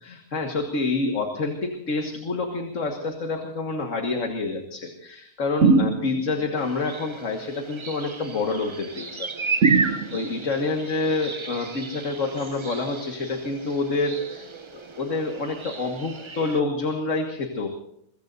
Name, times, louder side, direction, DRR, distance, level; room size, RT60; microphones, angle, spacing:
voice 1, 0.0-17.7, left 3 dB, 60° left, 3 dB, 2.0 m, -28 dB
sound 1, 5.6-6.5 9.6-10.5, right 4 dB, 60° right, 1.2 m, -21 dB
sound 2, 6.6-16.6, right 4 dB, 30° right, 0.6 m, -33 dB
23.5 x 22.5 x 2.7 m, 0.73 s
omnidirectional pair, 1.5 m